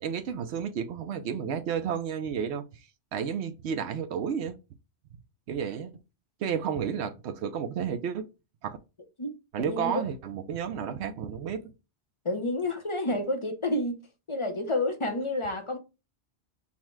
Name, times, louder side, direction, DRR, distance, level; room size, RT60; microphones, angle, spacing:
voice 1, 0.0-2.6 3.1-4.6 5.5-5.9 6.4-8.2 8.6-8.8 9.5-11.6, right 7 dB, 70° right, 0.8 m, -31 dB
voice 2, 9.2-10.1 12.2-14.0 14.3-15.8, left 1 dB, 35° left, 0.6 m, -30 dB
5.6 x 2.1 x 4.5 m
omnidirectional pair, 1.2 m